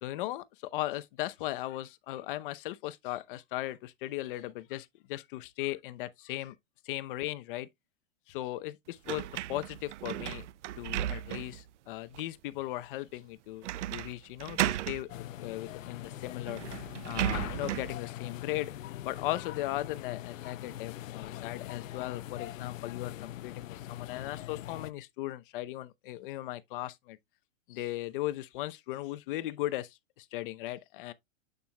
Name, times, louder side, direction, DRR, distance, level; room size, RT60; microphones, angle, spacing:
voice 1, 0.0-6.5 6.8-7.7 8.3-10.5 10.8-16.6 17.1-18.7 19.0-27.2 27.7-31.1, left 16 dB, 40° left, 0.9 m, -37 dB
sound 1, 9.1-11.6 12.1-12.2 13.6-14.1 14.4-15.0 16.0-16.1 16.5-18.0, right 13 dB, 65° right, 0.5 m, -34 dB
sound 2, 15.1-24.9, left 13 dB, 80° left, 0.6 m, -42 dB
8.2 x 7.2 x 2.3 m
hypercardioid pair, 150°, 39 cm